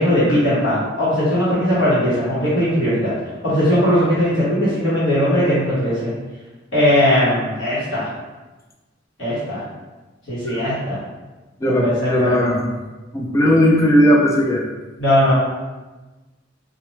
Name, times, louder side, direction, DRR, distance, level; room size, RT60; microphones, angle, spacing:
voice 1, 0.0-3.1 3.4-6.1 6.7-8.1 9.2-9.6 10.3-11.0 11.7-12.4 15.0-15.3, equal, 70° left, -10 dB, 1.2 m, -18 dB
voice 2, 11.6-12.7 13.1-14.7, equal, 15° left, -1 dB, 0.4 m, -17 dB
4.0 x 2.2 x 3.1 m, 1.2 s
head